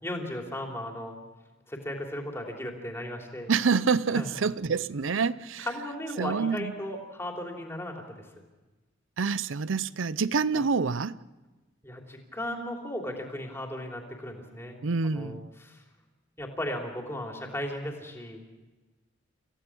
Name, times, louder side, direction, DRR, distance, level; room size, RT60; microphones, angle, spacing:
voice 1, 0.0-1.2 1.7-3.5 4.1-4.3 5.1-5.2 5.6-8.3 10.5-10.6 11.8-14.8 15.0-15.8 16.4-18.4, left 1 dB, 15° left, 3.2 m, -36 dB
voice 2, 3.5-5.7 6.2-6.7 9.2-11.2 14.8-15.5, right 5 dB, 90° right, 0.6 m, -27 dB
27.5 x 16.0 x 6.2 m
head